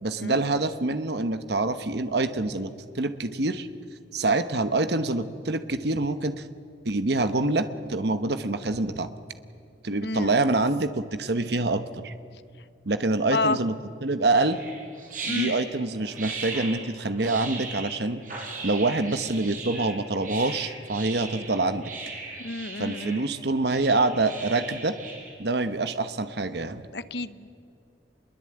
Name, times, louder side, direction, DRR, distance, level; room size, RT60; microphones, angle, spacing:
voice 1, 0.0-2.7 2.9-3.7 4.1-6.5 6.8-9.1 9.8-12.1 12.9-13.7 14.0-14.6 15.3-18.2 18.6-21.9 22.8-24.9 25.4-26.8, right 2 dB, 60° right, 10 dB, 1.1 m, -26 dB
voice 2, 10.0-10.3 13.3-13.6 15.2-15.5 22.4-23.2 26.9-27.5, left 2 dB, 60° left, 14 dB, 0.9 m, -29 dB
sound 1, 14.3-25.3, right 3 dB, 45° right, 6.3 m, -38 dB
26.0 x 22.0 x 8.8 m, 2.5 s
head